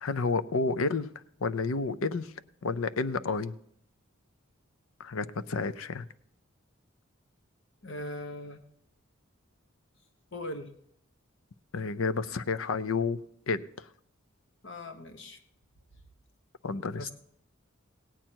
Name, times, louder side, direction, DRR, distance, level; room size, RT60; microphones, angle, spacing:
voice 1, 0.0-1.1 1.4-2.3 2.6-3.5 5.0-6.1 11.7-13.2 13.5-13.9 16.6-17.1, left 4 dB, 85° left, 15 dB, 0.6 m, -30 dB
voice 2, 7.8-8.6 10.3-10.7 14.6-15.4 17.0-17.1, left 1 dB, 65° left, 7 dB, 1.2 m, -39 dB
17.0 x 8.9 x 4.5 m, 0.71 s
head